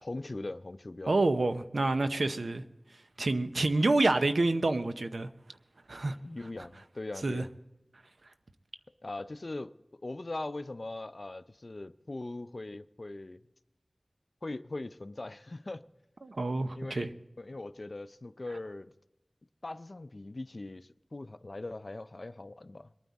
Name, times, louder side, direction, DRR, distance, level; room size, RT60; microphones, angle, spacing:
voice 1, 0.0-1.1 6.2-7.5 9.0-9.7 10.0-13.4 14.4-15.8 16.7-17.1 17.4-18.9 19.6-22.9, left 2 dB, 55° left, 0.5 m, -40 dB
voice 2, 1.1-2.6 3.2-5.3 5.9-6.2 7.2-7.4 16.2-17.1, right 2 dB, 85° right, 0.7 m, -28 dB
22.0 x 9.4 x 4.1 m
wide cardioid pair, 60°, 0 cm